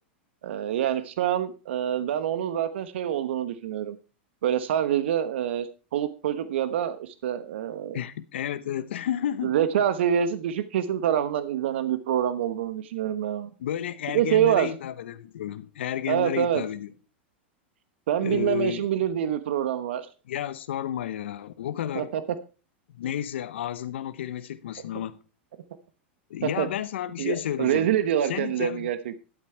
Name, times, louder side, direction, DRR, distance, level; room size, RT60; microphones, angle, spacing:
voice 1, 0.4-4.0 4.4-8.0 9.4-13.5 14.1-14.7 16.1-16.6 18.1-20.1 21.9-22.2 26.6-26.7 27.2-29.2, right 10 dB, 75° right, 1.0 m, -26 dB
voice 2, 7.9-9.6 13.6-16.9 18.2-18.9 20.3-22.1 22.9-25.2 26.3-27.9 28.2-28.9, left 11 dB, 75° left, 0.9 m, -31 dB
11.0 x 8.6 x 4.5 m
hypercardioid pair, 115°, 6 cm